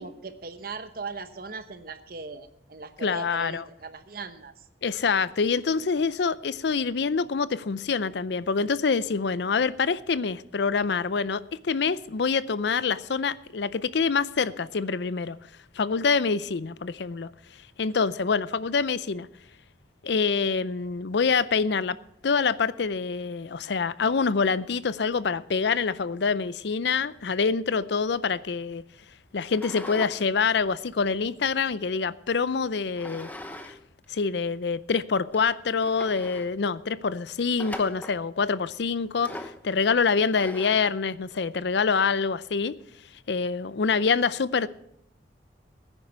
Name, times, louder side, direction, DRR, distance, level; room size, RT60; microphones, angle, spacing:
voice 1, 0.0-4.5, right 4 dB, 50° right, 0.9 m, -39 dB
voice 2, 3.0-3.6 4.8-15.4 15.8-17.3 17.8-19.3 20.0-22.0 22.2-28.8 29.3-33.3 33.6-33.7 34.1-42.7 43.3-44.7, left 5 dB, 65° left, 0.5 m, -26 dB
sound 1, 29.5-30.2 30.6-31.9 33.0-33.8 34.0-34.1 34.8-34.9 35.3-35.4 35.8-36.5 37.6-38.2 39.2-39.6 40.3-40.9, left 1 dB, 10° left, 0.8 m, -40 dB
16.0 x 9.8 x 4.6 m
head